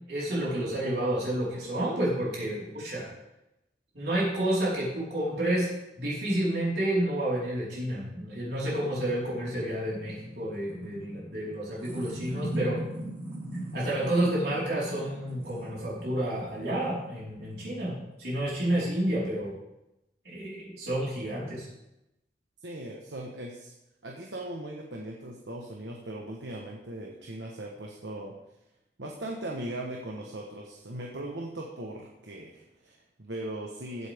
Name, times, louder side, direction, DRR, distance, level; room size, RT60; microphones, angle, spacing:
voice 1, 0.1-3.1 3.9-5.7 6.0-12.8 13.7-17.9 18.2-19.5 20.2-21.7, right 1 dB, 65° right, -7 dB, 4.5 m, -30 dB
sound 1, 8.1-18.2, right 1 dB, 30° right, 4.4 m, -40 dB
voice 2, 22.6-23.7 24.0-28.3 29.0-34.1, right 1 dB, 85° right, 0 dB, 1.3 m, -39 dB
15.5 x 8.3 x 3.6 m, 0.91 s
head